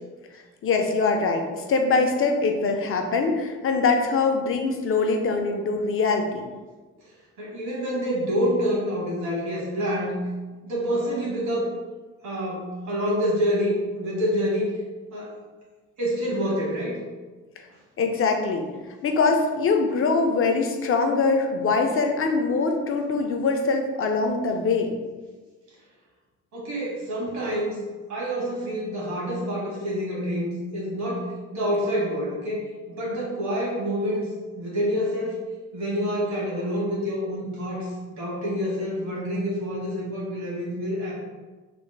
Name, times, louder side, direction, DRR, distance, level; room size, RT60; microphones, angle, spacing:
voice 1, 0.6-6.4 18.0-18.6 19.0-24.9, left 4 dB, 45° left, 4 dB, 0.5 m, -23 dB
voice 2, 7.4-10.2 10.6-11.7 12.2-14.7 15.1-15.3 16.0-17.0 26.5-27.8 28.1-34.3 34.6-35.4 35.7-41.1, equal, 70° right, -4 dB, 1.4 m, -27 dB
3.3 x 2.0 x 3.1 m, 1.3 s
cardioid pair, 90°, 30 cm